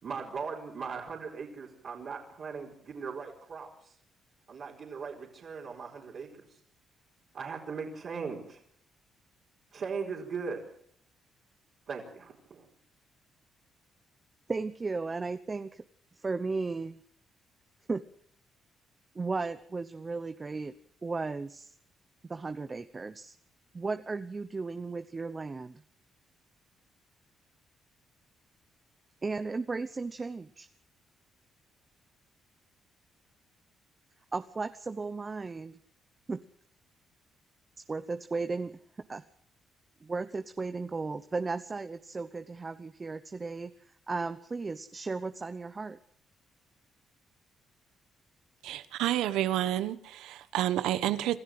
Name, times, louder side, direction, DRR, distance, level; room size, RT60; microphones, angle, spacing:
voice 1, 0.0-3.9 4.5-6.5 7.3-8.6 9.7-10.6 11.9-12.7, right 5 dB, 55° right, 4.6 m, -39 dB
voice 2, 14.5-15.8 16.2-17.0 17.9-18.0 19.1-20.7 21.0-21.8 22.3-23.3 23.7-25.8 29.2-30.7 34.3-35.8 36.3-36.4 37.9-38.8 39.1-39.2 40.0-43.7 44.1-46.0, right 4 dB, 30° right, 1.0 m, -35 dB
voice 3, 48.6-51.4, right 13 dB, 90° right, 1.3 m, -29 dB
26.5 x 13.5 x 7.8 m
cardioid pair, 90°, 0 cm